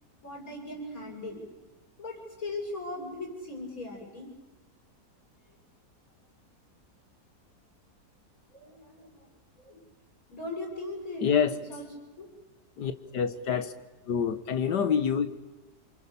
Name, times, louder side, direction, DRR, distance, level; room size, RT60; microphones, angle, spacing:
voice 1, 0.2-1.4 2.0-4.3 8.5-9.1 9.6-9.8 10.3-11.3 11.7-11.8 12.2-12.3, left 2 dB, 55° left, -1 dB, 8.1 m, -38 dB
voice 2, 11.2-11.6 12.8-13.7 14.1-15.3, left 7 dB, 85° left, 10 dB, 1.9 m, -27 dB
28.5 x 25.0 x 7.1 m, 1.1 s
omnidirectional pair, 1.8 m